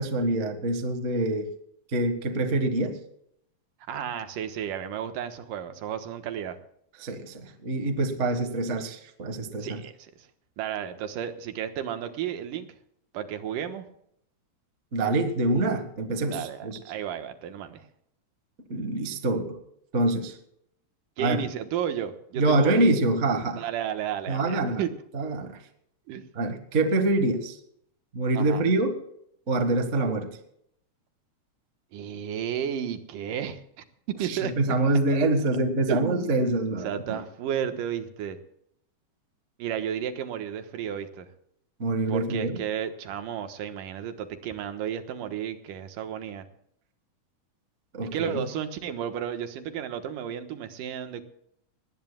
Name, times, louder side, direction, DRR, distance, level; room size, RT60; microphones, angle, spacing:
voice 1, 0.0-1.5 1.9-3.0 7.0-9.8 14.9-16.8 18.7-19.6 19.9-20.4 21.2-21.4 22.4-23.6 24.3-24.8 25.1-25.6 26.3-27.6 28.1-28.9 29.5-30.4 34.2-37.2 41.8-42.6 47.9-48.5, right 2 dB, 35° right, 6 dB, 1.2 m, -25 dB
voice 2, 3.9-6.6 9.6-10.3 10.6-12.7 13.1-13.9 16.3-17.9 21.2-22.9 23.6-24.9 26.1-26.3 28.3-28.6 31.9-33.8 34.2-34.5 35.9-36.4 36.8-38.4 39.6-41.3 42.1-46.5 48.1-51.2, right 9 dB, 85° right, 8 dB, 2.8 m, -33 dB
20.0 x 18.5 x 2.3 m, 0.70 s
omnidirectional pair, 3.7 m